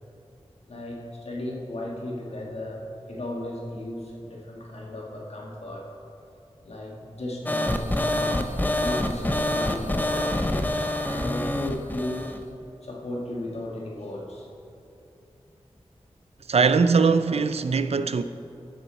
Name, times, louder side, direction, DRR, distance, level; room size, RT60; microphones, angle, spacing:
voice 1, 0.7-5.9 6.6-8.5 8.7-12.3 12.8-14.5, left 1 dB, 70° left, 1.7 m, -35 dB
sound 1, 7.5-12.4, left 1 dB, 15° left, 0.6 m, -26 dB
voice 2, 16.5-18.2, right 5 dB, 70° right, 0.4 m, -21 dB
12.5 x 7.0 x 4.4 m
wide cardioid pair, 80°, 11 cm